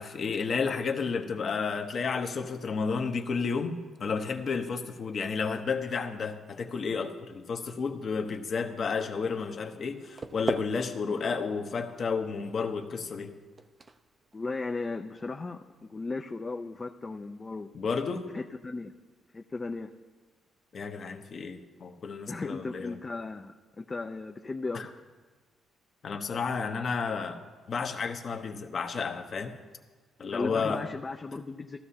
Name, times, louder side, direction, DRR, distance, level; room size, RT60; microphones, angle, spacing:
voice 1, 0.0-13.3 17.7-18.3 20.7-22.9 24.7-24.9 26.0-27.4 27.7-29.5 30.2-30.8, left 5 dB, 50° left, 5 dB, 1.0 m, -32 dB
sound 1, 9.9-15.8, right 3 dB, 30° right, 0.5 m, -41 dB
voice 2, 14.3-15.6 15.9-17.7 18.3-18.9 19.3-19.9 22.3-24.9 30.3-31.8, left 3 dB, 25° left, 5 dB, 0.5 m, -36 dB
14.5 x 13.0 x 2.8 m, 1.4 s
cardioid pair, 90°, 0 cm